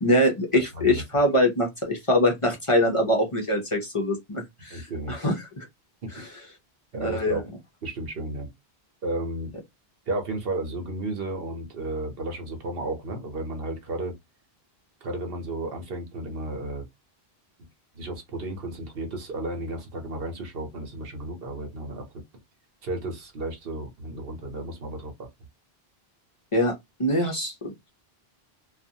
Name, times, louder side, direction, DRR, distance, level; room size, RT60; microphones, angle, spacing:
voice 1, 0.0-5.7 6.1-6.2 7.0-7.4 26.5-26.7 27.0-27.9, left 1 dB, 35° left, 0.6 m, -24 dB
voice 2, 0.5-1.0 4.7-5.1 6.0-6.2 6.9-7.4 7.8-8.5 9.0-9.5 10.1-14.1 15.0-16.8 17.9-22.1 22.8-25.1, right 2 dB, 65° right, 1.1 m, -33 dB
2.4 x 2.3 x 2.7 m
omnidirectional pair, 1.0 m